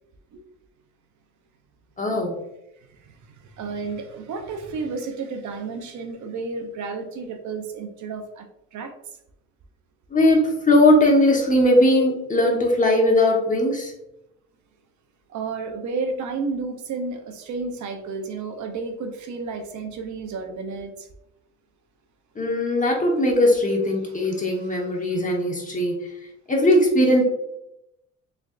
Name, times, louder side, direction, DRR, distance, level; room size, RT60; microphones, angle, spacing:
voice 1, 2.0-2.3 10.1-13.9 22.4-26.1 26.5-27.2, left 1 dB, 25° left, 0 dB, 1.1 m, -19 dB
voice 2, 2.9-8.5 8.7-8.9 15.3-21.1 24.0-24.8, right 4 dB, 75° right, 5 dB, 0.7 m, -32 dB
3.6 x 3.3 x 2.5 m, 0.83 s
cardioid pair, 90°, 30 cm